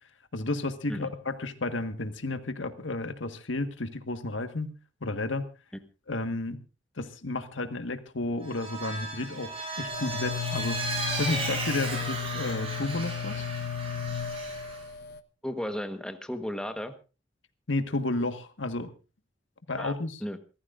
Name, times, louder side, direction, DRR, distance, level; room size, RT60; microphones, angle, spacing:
voice 1, 0.3-4.7 5.0-5.5 6.1-6.6 7.0-10.8 11.2-13.5 17.7-18.9 19.7-20.2, left 2 dB, 85° left, 8 dB, 1.6 m, -32 dB
Vehicle, 8.4-14.8, right 2 dB, 30° right, 7.0 m, -35 dB
sound 1, 9.9-15.2, left 8 dB, 65° left, 1.0 m, -35 dB
voice 2, 15.4-16.9 19.8-19.9 20.2-20.4, equal, 5° left, 7 dB, 1.3 m, -34 dB
27.5 x 14.5 x 2.6 m, 0.33 s
head